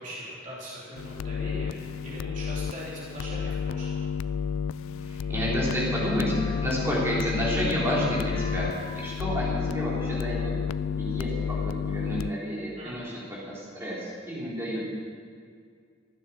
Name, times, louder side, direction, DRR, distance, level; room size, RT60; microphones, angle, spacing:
voice 1, 0.0-4.0 12.8-13.1, equal, 40° right, -6 dB, 3.0 m, -40 dB
sound 1, 1.0-12.3, left 7 dB, 85° left, 0.3 m, -31 dB
voice 2, 5.0-8.7 8.9-10.5 11.0-14.8, equal, 15° right, -7 dB, 3.7 m, -30 dB
Wind instrument woodwind instrument, 5.7-12.5, left 2 dB, 40° left, 2.7 m, -44 dB
15.0 x 9.7 x 7.0 m, 2.1 s
head